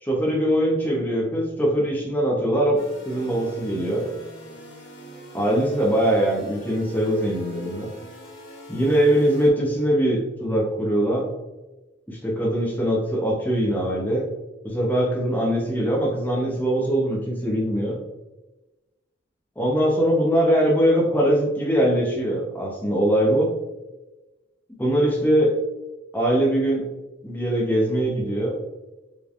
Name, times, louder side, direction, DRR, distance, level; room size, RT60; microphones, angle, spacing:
voice 1, 0.0-2.8 3.1-4.1 5.3-7.9 8.7-11.3 12.1-14.2 14.6-18.0 19.6-23.5 24.8-25.5 26.1-26.9 27.2-28.5, right 1 dB, 10° left, -2 dB, 0.9 m, -22 dB
sound 1, 2.7-9.5, right 1 dB, 75° left, 1.5 m, -42 dB
5.2 x 3.4 x 2.5 m, 1.1 s
head